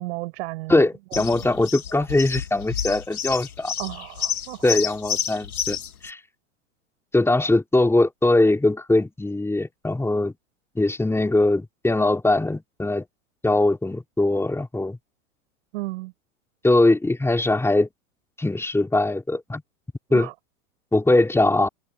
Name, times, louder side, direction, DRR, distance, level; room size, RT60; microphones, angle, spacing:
voice 1, 0.0-0.8 1.1-1.5 3.8-4.8 15.7-16.1 20.1-20.3, right 23 dB, 50° right, 5.3 m, -34 dB
voice 2, 0.7-3.7 4.6-5.8 6.0-6.2 7.1-10.3 10.8-13.0 13.4-15.0 16.6-17.9 18.4-19.6 20.1-20.3 20.9-21.7, left 2 dB, 5° left, 3.9 m, -21 dB
sound 1, 1.1-6.1, left 8 dB, 80° left, 1.7 m, -30 dB
figure-of-eight pair, 95°, 43 cm